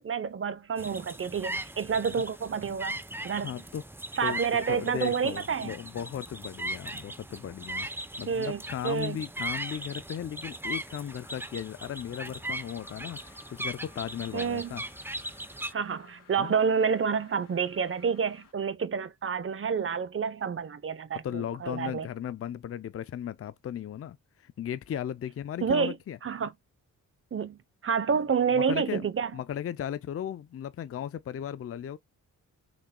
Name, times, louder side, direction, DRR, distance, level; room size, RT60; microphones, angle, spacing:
voice 1, 0.0-3.0 3.2-3.6 4.2-5.7 8.3-9.2 14.3-14.8 15.7-22.1 25.6-25.9 26.2-26.5 27.3-29.3, right 6 dB, 40° right, 0.8 m, -29 dB
sound 1, 0.8-15.7, right 1 dB, 5° right, 0.6 m, -39 dB
voice 2, 3.4-3.8 4.2-14.8 16.4-16.5 21.2-26.2 28.1-28.2 28.5-29.1 29.3-32.0, left 9 dB, 45° left, 0.5 m, -36 dB
sound 2, 11.1-18.5, left 6 dB, 70° left, 2.5 m, -57 dB
6.1 x 3.5 x 2.2 m
cardioid pair, 60°, 34 cm